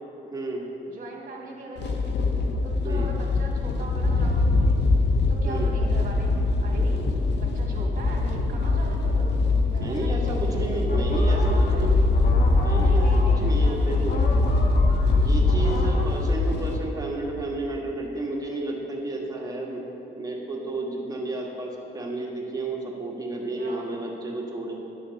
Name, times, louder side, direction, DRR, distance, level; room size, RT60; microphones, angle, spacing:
voice 1, 0.2-0.7 2.8-3.1 5.4-5.7 9.7-12.0 12.6-14.2 15.2-24.7, right 2 dB, 20° right, -2 dB, 1.5 m, -32 dB
voice 2, 0.9-2.2 2.6-4.8 5.3-6.3 6.6-7.0 7.3-9.4 9.7-10.6 11.0-12.1 12.7-14.5 23.6-23.9, right 3 dB, 45° right, -1 dB, 1.9 m, -40 dB
sound 1, 1.8-16.8, left 3 dB, 70° left, 0.8 m, -22 dB
sound 2, 10.9-16.1, left 2 dB, 50° left, 1.2 m, -36 dB
10.5 x 6.5 x 4.0 m, 2.9 s
cardioid pair, 90°, 19 cm